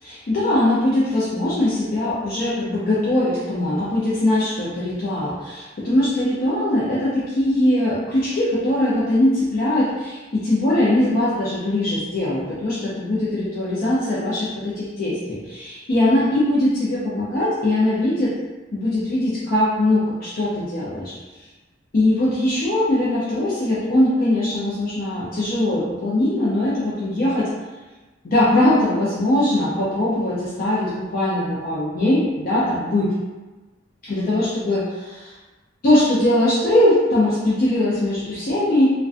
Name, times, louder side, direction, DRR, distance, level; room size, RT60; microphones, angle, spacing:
voice 1, 0.0-18.3 18.7-21.1 21.9-27.5 28.2-33.1 34.0-35.3 35.8-38.9, left 1 dB, 50° left, -8 dB, 0.5 m, -21 dB
2.4 x 2.2 x 2.4 m, 1.2 s
head